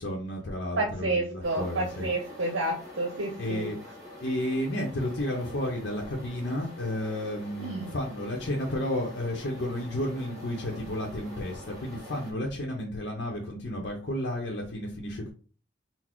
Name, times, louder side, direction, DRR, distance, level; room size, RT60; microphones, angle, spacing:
voice 1, 0.0-2.1 3.4-3.8 4.2-15.3, left 1 dB, 60° left, -1 dB, 0.7 m, -32 dB
voice 2, 0.8-3.7 7.6-7.9, right 2 dB, 75° right, 1 dB, 0.7 m, -30 dB
sound 1, 1.4-12.3, left 1 dB, 15° right, 1.8 m, -46 dB
4.0 x 2.0 x 4.4 m, 0.39 s
head